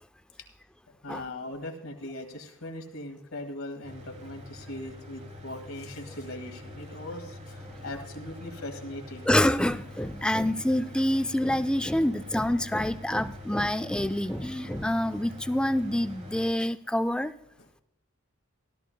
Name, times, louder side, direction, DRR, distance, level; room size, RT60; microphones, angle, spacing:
voice 1, 1.0-9.3 17.6-17.7, left 1 dB, 75° left, 5 dB, 1.9 m, -40 dB
Mechanical fan, 3.8-16.5, left 1 dB, 35° right, 1.2 m, -44 dB
voice 2, 9.3-17.3, left 1 dB, 5° left, 11 dB, 0.4 m, -26 dB
17.0 x 13.0 x 2.2 m, 0.85 s
head